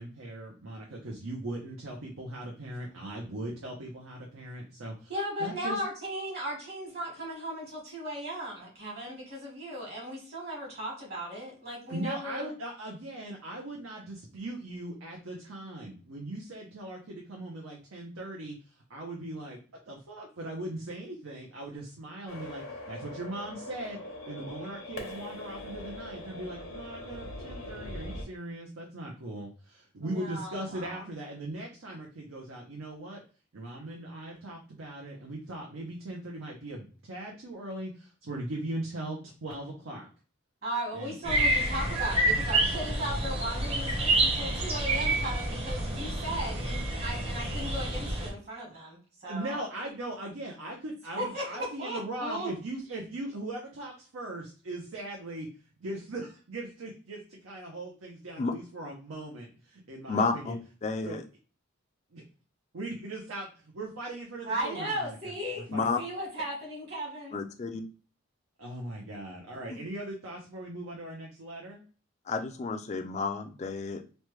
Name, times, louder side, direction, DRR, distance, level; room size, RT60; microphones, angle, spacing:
voice 1, 0.0-5.1 5.4-5.8 11.9-19.6 19.9-24.0 24.3-33.2 33.5-40.1 40.9-41.2 49.3-55.5 55.8-59.4 59.9-60.5 61.0-61.2 62.1-62.2 62.7-63.5 63.7-65.2 65.7-65.9 68.6-71.8, right 1 dB, 85° right, -1 dB, 0.7 m, -39 dB
voice 2, 5.1-12.5 30.0-31.1 40.6-49.6 51.2-52.5 64.4-65.6 66.0-67.4, equal, 50° right, -2 dB, 1.3 m, -36 dB
sound 1, 22.3-28.2, left 1 dB, 80° left, 0.9 m, -41 dB
sound 2, 41.2-48.3, right 2 dB, 30° right, 0.7 m, -28 dB
voice 3, 60.1-61.2 65.7-66.0 67.3-67.8 69.7-69.8 72.3-74.1, left 4 dB, 35° left, 6 dB, 0.3 m, -31 dB
3.1 x 2.2 x 3.1 m, 0.38 s
head